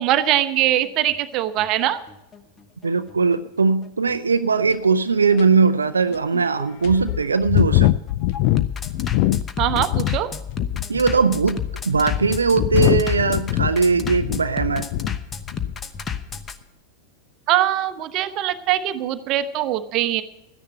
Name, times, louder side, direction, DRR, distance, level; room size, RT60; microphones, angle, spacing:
voice 1, 0.0-2.0 9.6-10.3 17.5-20.2, right 13 dB, 40° right, 12 dB, 0.9 m, -22 dB
Bass drum, 0.6-16.6, left 7 dB, 20° left, 0.9 m, -31 dB
voice 2, 2.8-7.9 10.9-11.6 11.9-14.9, right 5 dB, 75° right, 10 dB, 0.5 m, -20 dB
sound 1, 4.7-4.8 5.4-5.5 6.1-6.2 6.8-10.2 10.5-11.0 11.7-15.2 15.5-15.8, left 16 dB, 45° left, 0.3 m, -22 dB
13.0 x 10.0 x 6.6 m, 0.96 s
figure-of-eight pair, 90°, 0 cm